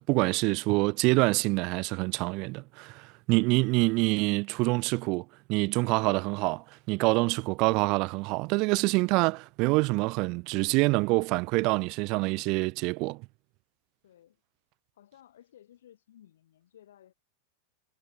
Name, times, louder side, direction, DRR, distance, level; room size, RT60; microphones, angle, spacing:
voice 1, 0.0-13.2, right 26 dB, 40° right, 0.4 m, -26 dB
voice 2, 14.0-14.4 14.9-17.1, left 11 dB, 60° left, 5.3 m, -57 dB
figure-of-eight pair, 90°, 0 cm